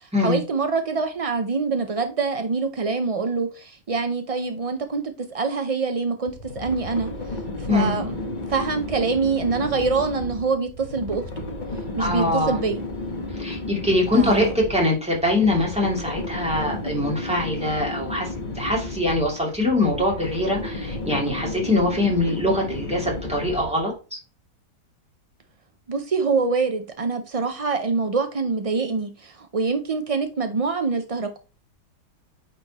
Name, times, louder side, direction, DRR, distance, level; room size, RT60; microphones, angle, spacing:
voice 1, 0.0-7.1 7.6-8.2 8.5-11.3 12.0-12.8 14.1-14.5 25.9-31.4, right 4 dB, 65° right, 0.3 m, -25 dB
sound 1, 6.3-23.9, left 2 dB, 35° left, 1.2 m, -33 dB
voice 2, 12.0-12.6 13.3-24.2, left 2 dB, 5° right, 2.6 m, -23 dB
9.0 x 4.3 x 2.9 m
omnidirectional pair, 1.6 m